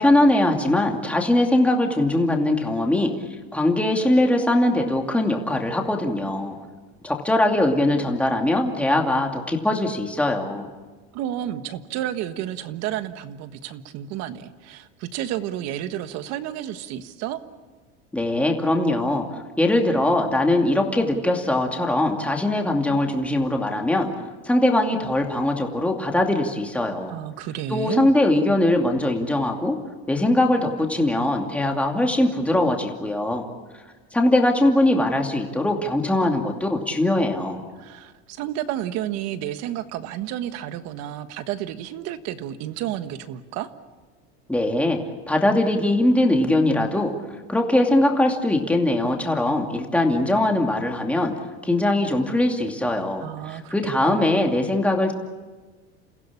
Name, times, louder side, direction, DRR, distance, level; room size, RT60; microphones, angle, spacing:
voice 1, 0.0-3.1 3.5-6.6 7.0-10.7 18.1-19.2 19.6-24.1 24.4-27.1 27.7-29.8 30.1-33.4 34.1-37.6 44.5-45.0 45.3-47.1 47.5-51.3 51.6-55.1, left 1 dB, 5° left, 2 dB, 2.5 m, -21 dB
voice 2, 11.1-17.4 27.1-28.1 37.8-43.7 53.2-54.4, right 11 dB, 60° right, 10 dB, 1.5 m, -31 dB
29.5 x 16.0 x 8.6 m, 1.3 s
cardioid pair, 140°, 30 cm